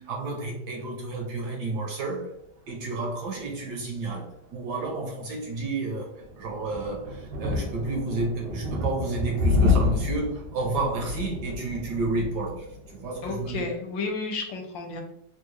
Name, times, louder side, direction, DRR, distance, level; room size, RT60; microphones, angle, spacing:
voice 1, 0.0-2.4 2.7-13.7, right 3 dB, 70° right, 1.0 m, -31 dB
sound 1, 6.2-13.7, left 3 dB, 90° right, 1.5 m, -29 dB
voice 2, 13.2-15.0, left 3 dB, 75° left, 1.3 m, -32 dB
3.6 x 2.3 x 3.0 m
omnidirectional pair, 2.1 m